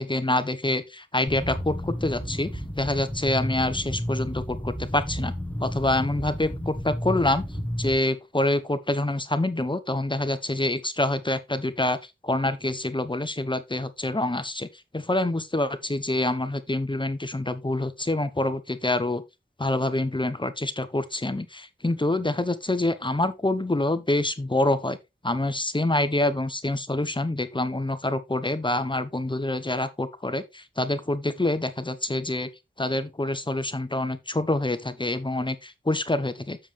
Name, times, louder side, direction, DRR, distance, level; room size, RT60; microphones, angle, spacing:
voice 1, 0.0-2.5 2.8-5.3 5.6-7.4 7.8-12.0 12.2-14.7 14.9-19.2 19.6-25.0 25.2-32.5 32.8-36.6, left 2 dB, 25° left, 1.1 m, -26 dB
sound 1, 1.3-8.0, equal, 5° left, 1.5 m, -32 dB
7.3 x 7.2 x 3.4 m
wide cardioid pair, 55°, 20 cm